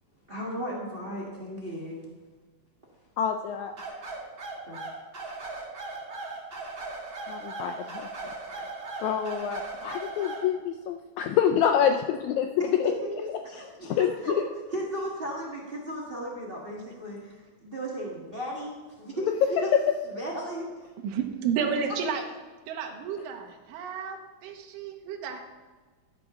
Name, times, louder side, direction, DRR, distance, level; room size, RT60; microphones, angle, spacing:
voice 1, 0.3-2.1 3.9-4.0 4.7-4.8 12.6-14.4 14.7-19.7 20.1-20.9, equal, 60° right, -3 dB, 0.5 m, -35 dB
voice 2, 3.2-3.7 7.3-8.1 8.6-8.7 9.0-12.5 12.8-12.9 13.8-14.1 19.7-19.8, left 8 dB, 85° left, 5 dB, 1.6 m, -26 dB
sound 1, 3.8-10.5, right 3 dB, 40° right, 2.3 m, -38 dB
voice 3, 21.0-22.2 22.7-25.4, right 6 dB, 80° right, 3 dB, 2.6 m, -31 dB
12.5 x 4.9 x 6.2 m, 1.4 s
omnidirectional pair, 3.8 m